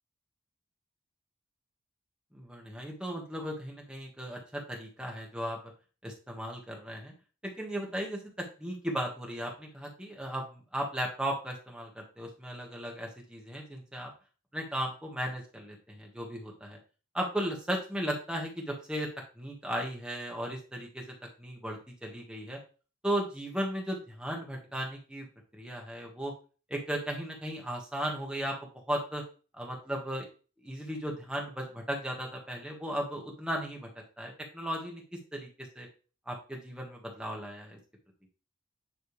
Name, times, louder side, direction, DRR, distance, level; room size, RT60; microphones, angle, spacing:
voice 1, 2.3-5.6 6.0-7.1 7.6-14.1 14.5-16.8 17.1-19.1 19.4-21.0 21.4-22.6 23.0-25.3 25.5-26.3 26.7-28.6 28.9-29.2 29.5-30.3 30.6-33.9 34.2-35.0 35.3-35.5 35.7-35.9 36.3-37.8, equal, 5° right, 0 dB, 1.3 m, -36 dB
9.6 x 3.3 x 3.2 m, 0.36 s
head